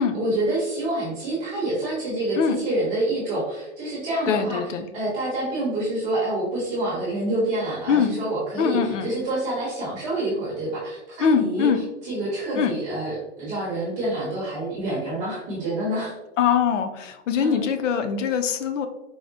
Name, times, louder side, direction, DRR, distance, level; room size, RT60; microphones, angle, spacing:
voice 1, 0.0-4.6 4.9-16.1 17.4-17.6, right 1 dB, 20° right, -7 dB, 0.9 m, -27 dB
voice 2, 4.3-4.9 7.9-8.2 8.6-9.1 11.2-11.8 12.6-12.7 16.4-18.9, left 7 dB, 90° left, 8 dB, 0.6 m, -22 dB
4.7 x 2.1 x 2.6 m, 0.98 s
hypercardioid pair, 160°, 36 cm